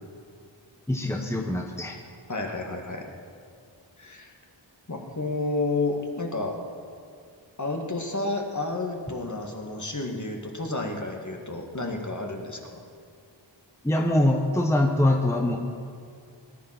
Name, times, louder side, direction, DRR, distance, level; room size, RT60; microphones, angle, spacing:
voice 1, 0.9-2.0 13.8-15.6, left 1 dB, 5° left, 2 dB, 1.2 m, -23 dB
voice 2, 2.3-3.1 4.0-4.3 4.9-6.6 7.6-12.8, left 2 dB, 40° left, 2 dB, 2.0 m, -31 dB
19.0 x 11.0 x 5.9 m, 2.3 s
wide cardioid pair, 65°, 46 cm